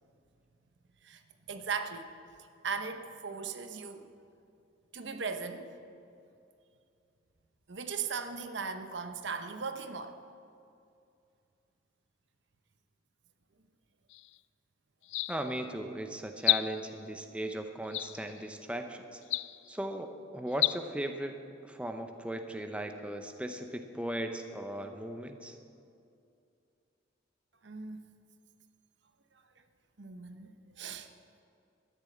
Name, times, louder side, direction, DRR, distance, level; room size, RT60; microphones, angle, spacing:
voice 1, 1.5-2.1 2.4-4.1 4.9-5.8 7.7-10.2 27.6-28.0 30.0-31.1, right 5 dB, 65° right, 8 dB, 0.9 m, -38 dB
sound 1, 14.1-14.4 15.0-15.6 16.4-17.0 17.9-18.5 19.2-19.8 20.5-20.8, left 18 dB, 70° left, 0.3 m, -31 dB
voice 2, 15.3-19.2 19.7-21.4 21.6-25.6, right 1 dB, 5° right, 5 dB, 0.7 m, -37 dB
13.5 x 10.5 x 7.9 m, 2.5 s
head